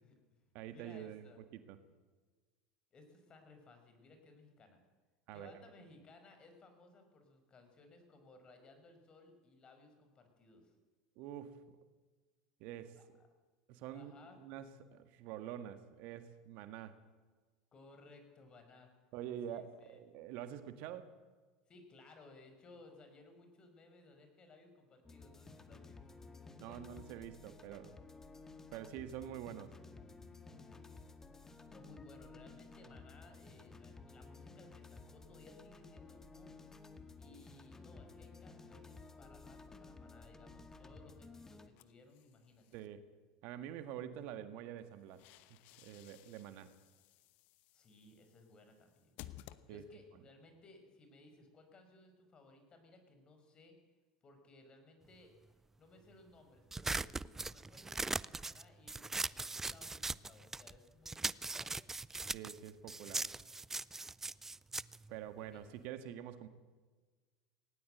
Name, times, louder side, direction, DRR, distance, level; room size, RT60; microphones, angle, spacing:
voice 1, 0.0-1.4 2.9-4.8 5.3-10.7 13.0-13.3 13.9-14.4 17.7-18.9 19.5-20.0 21.7-26.2 26.7-27.3 30.4-30.9 31.7-36.6 37.2-42.8 47.7-49.2 49.7-53.7 54.2-55.3 55.8-61.7 65.5-65.6, left 2 dB, 35° left, 6 dB, 5.5 m, -61 dB
voice 2, 0.5-1.8 5.3-5.6 11.1-11.6 12.6-13.0 13.7-17.0 19.1-21.2 26.6-28.0 28.7-29.7 42.7-43.0 43.4-45.2 45.8-46.7 49.7-49.8 62.3-63.3 65.1-66.5, right 10 dB, 60° right, 10 dB, 1.6 m, -46 dB
sound 1, 25.0-41.7, left 3 dB, 15° left, 1.9 m, -55 dB
sound 2, 41.8-42.9 44.8-50.2, left 14 dB, 55° left, 1.0 m, -58 dB
sound 3, 56.7-60.8 61.0-65.9, right 3 dB, 15° right, 0.5 m, -40 dB
19.0 x 18.5 x 7.9 m, 1.4 s
hypercardioid pair, 75°, 3 cm